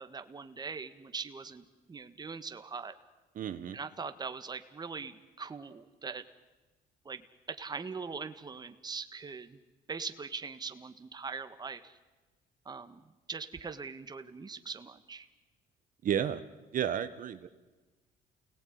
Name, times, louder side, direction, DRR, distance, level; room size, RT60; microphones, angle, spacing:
voice 1, 0.0-2.9 3.7-6.2 7.0-9.6 9.9-12.0 12.6-15.3, right 5 dB, 25° right, 9 dB, 1.6 m, -41 dB
voice 2, 3.3-3.8 16.0-16.4 16.7-17.5, right 9 dB, 55° right, 9 dB, 1.3 m, -32 dB
29.0 x 18.5 x 9.5 m, 1.2 s
cardioid pair, 110°, 17 cm